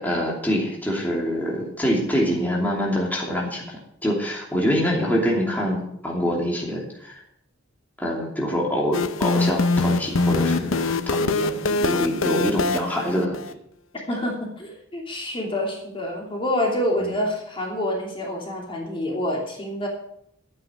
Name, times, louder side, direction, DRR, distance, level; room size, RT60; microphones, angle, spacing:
voice 1, 0.0-7.2 8.0-13.4 17.0-17.2, equal, 10° left, -3 dB, 2.8 m, -25 dB
sound 1, 8.9-13.5, left 3 dB, 85° left, 0.7 m, -23 dB
voice 2, 14.1-19.9, left 1 dB, 25° left, -1 dB, 2.8 m, -27 dB
12.5 x 9.4 x 6.3 m, 0.75 s
head